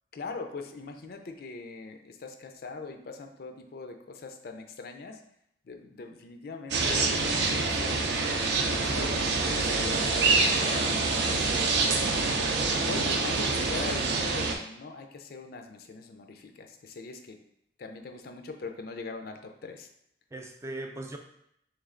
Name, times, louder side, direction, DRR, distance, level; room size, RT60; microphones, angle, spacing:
voice 1, 0.1-5.2 5.7-8.1 8.8-11.0 12.1-12.5 12.9-17.4 17.8-19.9, left 3 dB, 55° left, 5 dB, 0.4 m, -41 dB
sound 1, 6.7-14.6, right 3 dB, 70° right, 0.5 m, -26 dB
voice 2, 11.4-11.9 20.3-21.2, right 2 dB, 15° right, 3 dB, 0.3 m, -40 dB
3.2 x 3.1 x 3.7 m, 0.75 s
head